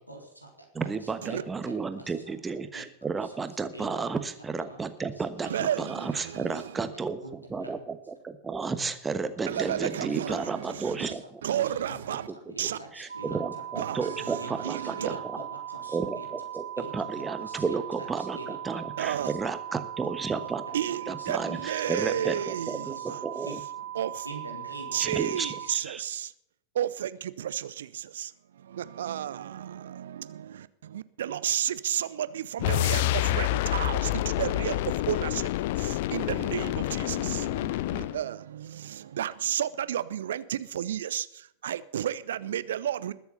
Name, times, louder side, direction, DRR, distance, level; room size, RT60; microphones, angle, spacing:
voice 1, 0.0-2.1 2.7-2.9 3.2-4.2 4.7-4.8 5.2-5.6 6.3-6.6 7.2-7.3 7.6-7.8 8.8-8.9 9.2-11.3 11.8-12.2 12.5-14.5 15.0-16.3 16.8-19.3 20.4-20.7 21.1-21.7 22.0-23.2 23.5-23.6 24.2-25.7, right 1 dB, 90° left, 3.7 m, -46 dB
voice 2, 0.7-7.2 7.5-8.0 8.2-11.2 12.9-15.4 15.9-16.6 16.9-20.6 21.1-22.9 23.2-23.6 25.0-26.0, right 4 dB, 15° right, 1.2 m, -32 dB
voice 3, 5.4-6.8 9.5-11.1 11.4-12.3 12.6-12.8 13.8-15.2 19.0-19.3 20.7-23.2 24.0-24.3 24.9-26.3 26.7-35.5 35.8-43.1, right 10 dB, 60° right, 0.7 m, -32 dB
sound 1, 13.1-25.7, right 12 dB, 75° right, 1.7 m, -39 dB
sound 2, 32.6-38.2, left 16 dB, 50° left, 0.4 m, -28 dB
21.0 x 7.1 x 5.5 m
figure-of-eight pair, 90°, 0 cm